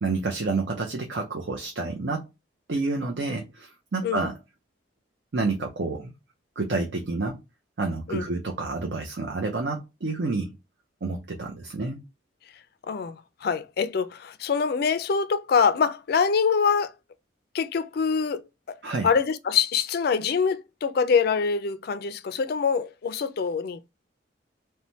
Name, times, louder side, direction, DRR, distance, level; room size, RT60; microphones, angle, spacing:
voice 1, 0.0-2.3 2.7-4.3 5.3-6.1 6.6-7.4 7.8-10.5 11.0-12.0 18.8-19.1, right 3 dB, 65° right, 0.6 m, -29 dB
voice 2, 12.8-16.9 17.5-18.8 19.0-23.9, left 6 dB, 55° left, 0.3 m, -25 dB
3.1 x 2.2 x 2.6 m
head